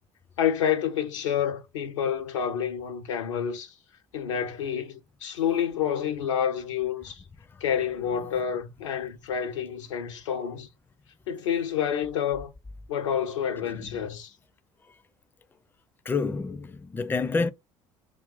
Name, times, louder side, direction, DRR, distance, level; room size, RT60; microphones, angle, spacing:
voice 1, 0.4-3.7 4.1-7.2 7.6-10.7 11.3-12.5 12.9-14.3, left 8 dB, 75° left, 0.6 m, -28 dB
voice 2, 16.1-17.5, left 4 dB, 15° left, 0.4 m, -28 dB
2.5 x 2.2 x 3.7 m
figure-of-eight pair, 55°, 16 cm